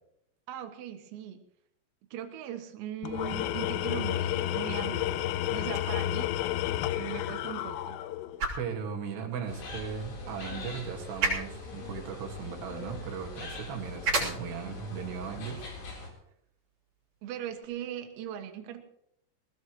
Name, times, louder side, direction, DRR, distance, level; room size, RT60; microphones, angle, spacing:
voice 1, 0.5-1.4 2.1-5.2 5.5-6.3 6.9-8.0 17.2-18.8, right 10 dB, 80° right, 6 dB, 4.0 m, -39 dB
Tools, 3.0-8.4, left 12 dB, 80° left, 3.1 m, -31 dB
sound 1, 5.6-17.6, right 3 dB, 30° right, 7.3 m, -39 dB
voice 2, 8.6-16.1, right 7 dB, 60° right, 1 dB, 3.7 m, -38 dB
sound 2, 9.5-16.1, left 3 dB, 55° left, 5.9 m, -42 dB
20.5 x 19.5 x 3.2 m, 0.72 s
omnidirectional pair, 6.0 m